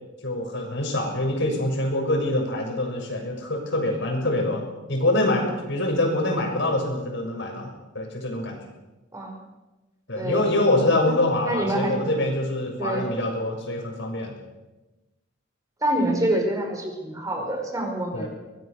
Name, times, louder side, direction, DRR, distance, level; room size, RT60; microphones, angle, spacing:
voice 1, 0.2-4.6 4.9-7.7 7.9-8.6 10.1-14.3 18.1-18.3, left 1 dB, 65° left, 2 dB, 6.6 m, -25 dB
voice 2, 10.1-10.5 10.8-11.1 11.5-12.1 12.8-13.1 15.8-18.3, right 1 dB, 20° right, 2 dB, 5.3 m, -26 dB
23.5 x 20.0 x 6.7 m, 1.1 s
head